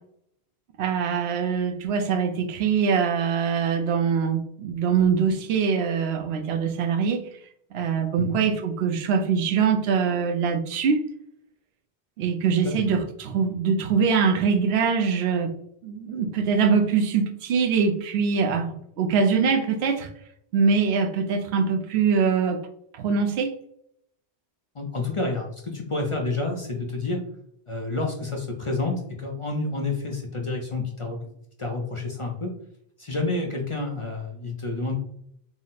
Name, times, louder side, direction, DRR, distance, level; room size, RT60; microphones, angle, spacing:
voice 1, 0.8-7.2 7.7-11.0 12.2-15.5 15.8-20.1 20.5-22.6 22.9-23.5, right 6 dB, 85° right, 7 dB, 0.8 m, -23 dB
voice 2, 24.7-27.2 27.7-31.2 31.6-32.5 33.0-35.0, left 3 dB, 40° left, 1 dB, 0.5 m, -29 dB
3.9 x 2.0 x 3.9 m, 0.72 s
omnidirectional pair, 1.0 m